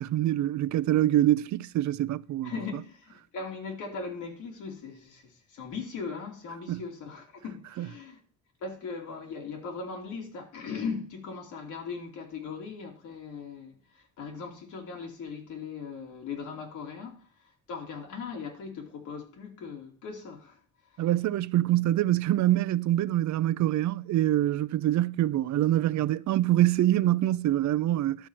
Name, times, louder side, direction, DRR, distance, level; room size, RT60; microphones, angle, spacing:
voice 1, 0.0-2.5 6.7-6.8 7.8-7.9 21.0-28.3, right 13 dB, 70° right, 0.5 m, -25 dB
voice 2, 2.4-8.2 8.6-21.1, left 5 dB, 80° left, 2.9 m, -39 dB
11.5 x 4.4 x 7.4 m
cardioid pair, 90°, 30 cm